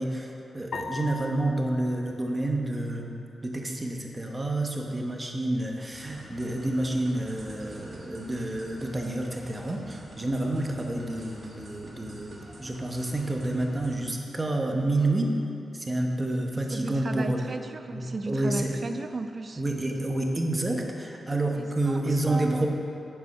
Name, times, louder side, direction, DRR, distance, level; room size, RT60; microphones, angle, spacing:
voice 1, 0.0-3.2 3.4-15.3 15.7-17.4 17.9-18.8 19.6-22.7, right 1 dB, 20° right, 1 dB, 1.0 m, -29 dB
sound 1, 0.7-3.2, left 4 dB, 65° left, 0.7 m, -40 dB
sound 2, 5.9-14.0, right 1 dB, 55° right, 1.6 m, -48 dB
voice 2, 16.7-19.6 21.5-22.7, right 3 dB, 35° right, 8 dB, 0.5 m, -35 dB
9.3 x 7.0 x 5.5 m, 2.7 s
wide cardioid pair, 130°, 0 cm